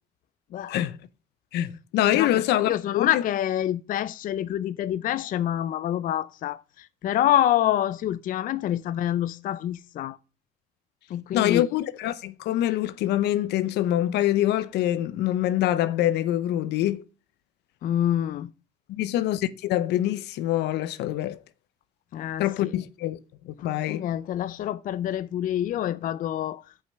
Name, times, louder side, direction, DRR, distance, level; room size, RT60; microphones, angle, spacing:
voice 1, 1.5-3.2 11.3-17.0 18.9-21.4 22.4-23.2 23.4-24.1, left 13 dB, 80° left, 0.8 m, -25 dB
voice 2, 2.1-10.2 11.1-11.6 17.8-18.5 22.1-22.7 23.9-26.6, left 12 dB, 55° left, 0.5 m, -27 dB
7.9 x 5.7 x 5.3 m
cardioid pair, 110°, 17 cm